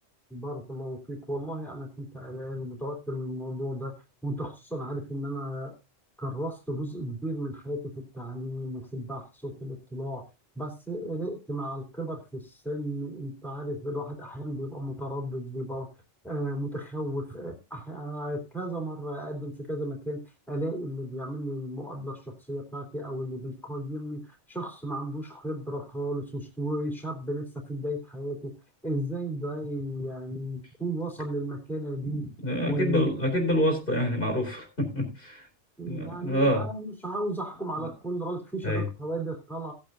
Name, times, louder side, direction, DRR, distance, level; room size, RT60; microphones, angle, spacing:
voice 1, 0.3-3.9 4.2-5.8 6.2-10.3 10.5-15.9 16.2-28.5 28.8-32.3 32.7-33.2 35.8-39.7, right 1 dB, ahead, 3 dB, 3.2 m, -34 dB
voice 2, 32.1-35.5 35.8-36.6 38.6-38.9, equal, 55° left, 3 dB, 3.5 m, -27 dB
18.0 x 8.8 x 2.6 m, 0.26 s
omnidirectional pair, 1.2 m